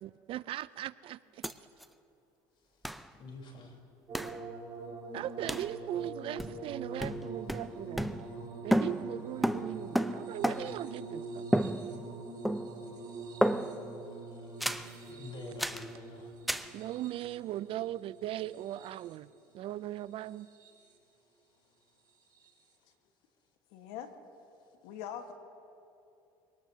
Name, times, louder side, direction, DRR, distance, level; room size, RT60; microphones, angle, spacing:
voice 1, 0.0-1.4 5.1-8.1 8.6-11.7 16.7-19.3 19.5-20.5, right 13 dB, 55° right, 18 dB, 0.4 m, -39 dB
sound 1, 1.4-1.5 1.8-1.9 2.8-3.1 4.1-4.4 5.5-5.7 6.4-6.7 7.0-8.5 8.7-10.9 11.5-12.2 12.5-12.9 13.4-13.9 14.6-14.9 15.6-15.9 16.5-16.7, equal, ahead, 0.6 m, -32 dB
voice 2, 3.2-3.8 14.6-16.3, left 3 dB, 50° left, 1 dB, 3.8 m, -47 dB
sound 2, 4.1-19.3 20.2-20.9 22.3-22.5, right 3 dB, 40° right, 3.8 m, -44 dB
voice 3, 23.7-24.1 24.8-25.3, left 9 dB, 75° left, 6 dB, 1.5 m, -42 dB
24.5 x 19.0 x 2.8 m, 2.7 s
supercardioid pair, 90°, 11 cm